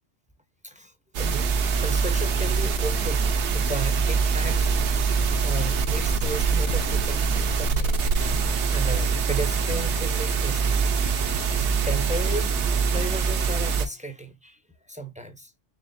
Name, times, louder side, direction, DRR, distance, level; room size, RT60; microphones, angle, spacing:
voice 1, 0.6-1.5 1.8-4.7 5.4-7.2 7.6-7.9 8.2-8.3 8.7-11.2 11.8-12.5 12.9-14.6 14.9-15.5, right 1 dB, 10° right, 0.4 m, -34 dB
sound 1, 1.1-13.9, right 5 dB, 70° right, 1.0 m, -24 dB
sound 2, 3.9-12.6, right 2 dB, 80° left, 2.0 m, -38 dB
4.2 x 3.4 x 2.5 m
omnidirectional pair, 1.2 m